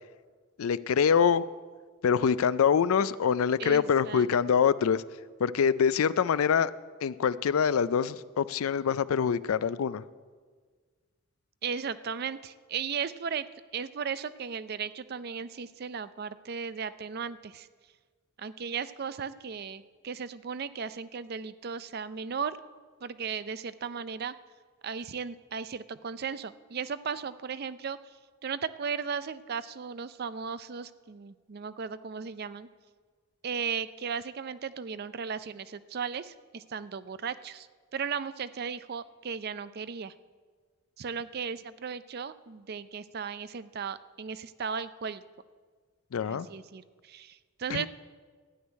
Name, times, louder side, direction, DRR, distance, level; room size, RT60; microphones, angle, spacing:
voice 1, 0.6-1.4 2.0-5.0 5.4-6.7 7.0-10.0 46.1-46.5 47.7-47.9, left 7 dB, 80° left, 17 dB, 0.4 m, -25 dB
voice 2, 3.6-4.3 11.6-13.5 13.7-17.7 18.4-22.6 23.0-24.3 24.8-28.0 28.4-32.7 33.4-37.7 37.9-40.1 41.0-45.2 46.3-47.9, right 6 dB, 45° right, 14 dB, 0.4 m, -36 dB
13.0 x 6.3 x 9.5 m, 1.5 s
head